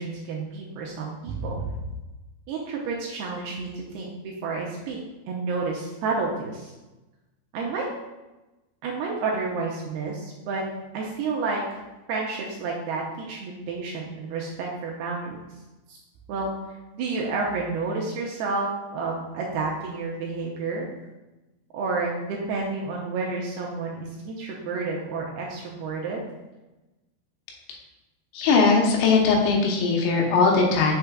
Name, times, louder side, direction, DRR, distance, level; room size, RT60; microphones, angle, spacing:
voice 1, 0.0-1.8 2.5-5.0 5.3-6.7 7.5-7.9 8.8-10.7 10.9-11.8 12.1-15.4 15.9-16.0 16.3-16.5 16.9-20.9 21.7-26.2, right 4 dB, 80° right, -3 dB, 2.4 m, -30 dB
voice 2, 28.3-30.9, left 4 dB, 80° left, 0 dB, 3.3 m, -20 dB
6.6 x 6.6 x 2.4 m, 1.1 s
omnidirectional pair, 5.1 m